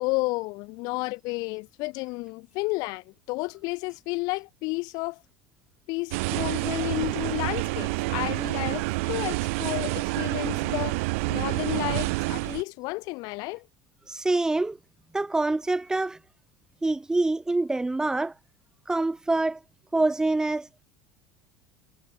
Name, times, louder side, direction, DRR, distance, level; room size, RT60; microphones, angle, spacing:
voice 1, 0.0-5.2 5.9-11.0 11.3-13.7, left 25 dB, 65° left, 4.1 m, -32 dB
sound 1, 6.1-12.6, right 26 dB, 80° right, 0.5 m, -28 dB
voice 2, 14.1-14.8 15.1-16.2 16.8-18.3 18.9-19.6 19.9-20.7, right 2 dB, 10° right, 0.9 m, -25 dB
supercardioid pair, 120°, 7 cm